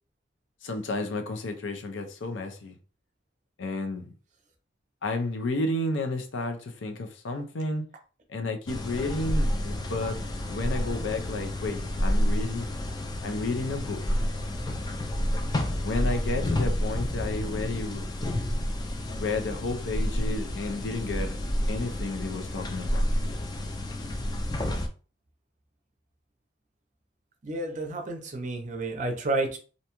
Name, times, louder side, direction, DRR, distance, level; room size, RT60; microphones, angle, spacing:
voice 1, 0.6-2.8 3.6-4.1 5.0-7.8 8.3-12.7 13.2-14.0 15.8-18.1 19.2-21.4 21.7-23.1, left 2 dB, 75° left, 0.5 m, -32 dB
sound 1, 8.7-24.9, left 1 dB, 20° left, 0.3 m, -29 dB
voice 2, 27.4-29.6, right 2 dB, 40° right, 0.5 m, -30 dB
2.6 x 2.2 x 2.9 m
head